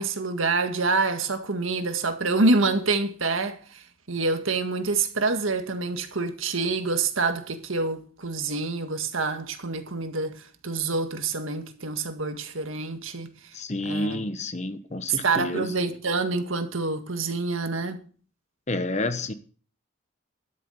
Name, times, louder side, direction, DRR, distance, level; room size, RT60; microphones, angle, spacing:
voice 1, 0.0-13.3 13.8-14.2 15.1-18.0, right 3 dB, 80° right, 1.8 m, -27 dB
voice 2, 13.5-15.7 18.7-19.3, left 2 dB, 35° left, 1.0 m, -29 dB
12.5 x 7.2 x 7.2 m
head